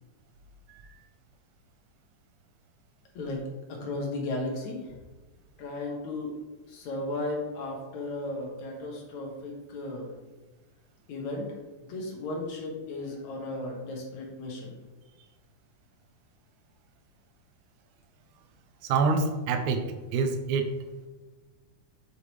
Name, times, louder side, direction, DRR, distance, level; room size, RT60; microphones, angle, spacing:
voice 1, 3.1-5.0 5.6-6.4 6.7-10.1 11.1-11.5 11.8-14.8, left 2 dB, 70° left, 0 dB, 2.7 m, -35 dB
voice 2, 18.9-20.7, right 4 dB, 75° right, 6 dB, 2.0 m, -26 dB
7.9 x 7.8 x 3.2 m, 1.2 s
omnidirectional pair, 3.6 m